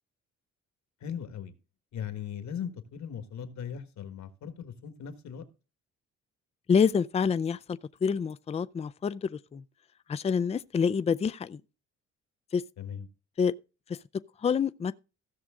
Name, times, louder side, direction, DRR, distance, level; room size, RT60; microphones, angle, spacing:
voice 1, 1.0-1.5 1.9-5.4 12.8-13.1, left 8 dB, 65° left, 1.6 m, -38 dB
voice 2, 6.7-9.6 10.1-11.6 12.5-12.6 13.4-13.5 14.4-14.9, left 6 dB, 20° left, 0.4 m, -27 dB
15.5 x 6.3 x 3.7 m
cardioid pair, 90°, 30 cm